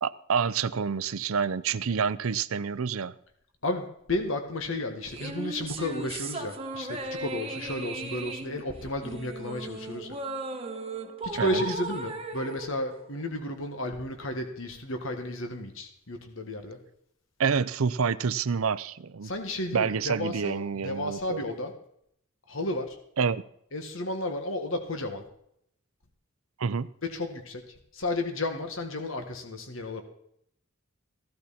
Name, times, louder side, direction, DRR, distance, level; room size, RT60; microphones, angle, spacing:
voice 1, 0.0-3.1 11.4-11.6 17.4-19.3 19.7-21.4 23.2-23.4 26.6-26.9, right 6 dB, 80° right, 15 dB, 0.6 m, -28 dB
voice 2, 3.6-10.2 11.2-16.8 19.2-21.7 22.5-23.0 23.7-25.2 27.0-27.6 27.9-30.0, left 1 dB, 65° left, 6 dB, 1.8 m, -33 dB
sound 1, 5.1-13.7, right 3 dB, 30° right, 1.3 m, -37 dB
16.0 x 12.0 x 4.3 m, 0.70 s
head